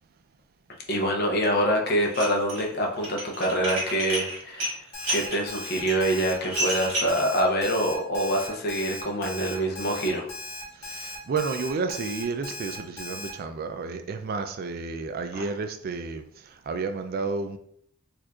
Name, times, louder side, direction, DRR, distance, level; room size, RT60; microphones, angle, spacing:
voice 1, 0.9-4.7 5.1-10.3 15.3-15.5, right 1 dB, 45° left, 0 dB, 0.6 m, -25 dB
Dishes pots and pans, 2.0-2.6 3.0-7.2, right 1 dB, 60° right, 1.5 m, -31 dB
Alarm, 4.9-13.3, left 2 dB, 70° left, 1.1 m, -38 dB
voice 2, 10.8-16.2 16.7-17.6, right 4 dB, 45° right, 8 dB, 0.3 m, -31 dB
4.4 x 2.5 x 2.3 m, 0.66 s
head